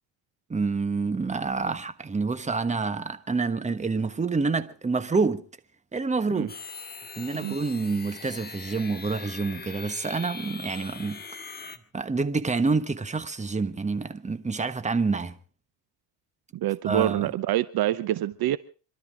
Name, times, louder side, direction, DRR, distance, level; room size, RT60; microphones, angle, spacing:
voice 1, 0.5-5.4 5.9-6.5 7.2-11.2 11.9-15.3 16.8-17.3, right 4 dB, 15° right, 1.3 m, -27 dB
sound 1, 6.5-11.8, left 5 dB, 20° left, 1.5 m, -41 dB
voice 2, 16.5-18.6, right 13 dB, 55° right, 0.8 m, -26 dB
27.0 x 13.0 x 3.7 m
cardioid pair, 105°, 45 cm